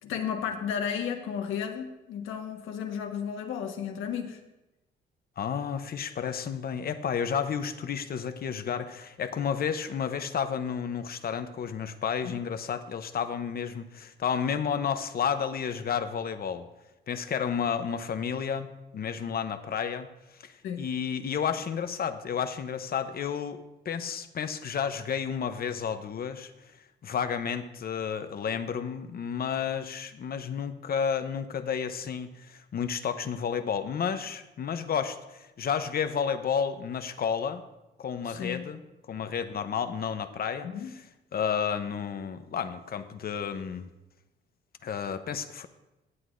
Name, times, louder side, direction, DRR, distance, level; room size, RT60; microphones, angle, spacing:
voice 1, 0.0-4.4 12.2-12.4 20.6-20.9 38.3-38.6 40.6-40.9, left 7 dB, 85° left, 4 dB, 1.3 m, -33 dB
voice 2, 5.4-16.7 17.1-18.7 18.9-20.1 20.4-26.5 27.0-37.6 38.0-38.8 39.1-40.7 41.3-43.9 44.8-45.7, left 7 dB, 50° left, 9 dB, 0.7 m, -31 dB
17.0 x 8.0 x 2.6 m, 1.0 s
cardioid pair, 90°, 20 cm